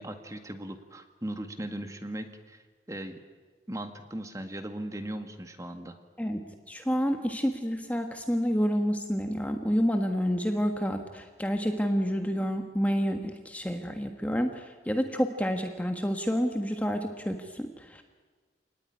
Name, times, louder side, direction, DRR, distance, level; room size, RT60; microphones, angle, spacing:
voice 1, 0.0-2.6 2.9-3.2 3.7-6.0, right 1 dB, 20° right, 7 dB, 1.9 m, -38 dB
voice 2, 6.2-18.0, equal, 10° left, 5 dB, 1.3 m, -29 dB
27.5 x 18.5 x 10.0 m, 1.5 s
head